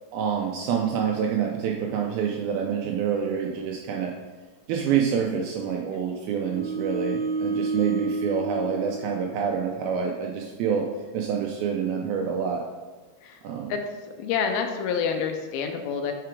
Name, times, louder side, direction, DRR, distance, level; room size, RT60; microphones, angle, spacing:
voice 1, 0.1-4.1 4.7-10.9 11.1-12.6 13.4-13.7, right 7 dB, 80° right, 0 dB, 2.2 m, -27 dB
sound 1, 6.3-9.8, right 3 dB, 60° right, 1.5 m, -31 dB
voice 2, 14.2-16.1, left 6 dB, 80° left, 5 dB, 2.3 m, -27 dB
5.8 x 4.6 x 4.7 m, 1.3 s
omnidirectional pair, 4.7 m